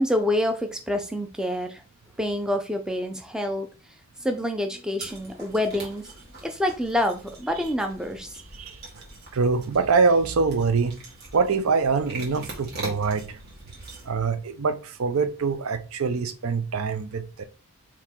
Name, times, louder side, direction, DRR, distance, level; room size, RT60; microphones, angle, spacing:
voice 1, 0.0-1.8 2.2-3.7 4.2-6.0 6.4-8.4, left 1 dB, 5° right, 0.5 m, -27 dB
sound 1, 5.0-14.1, right 2 dB, 45° right, 1.6 m, -43 dB
voice 2, 9.3-11.0 11.3-13.4 14.0-17.4, right 4 dB, 75° right, 0.5 m, -24 dB
4.6 x 2.9 x 3.6 m
head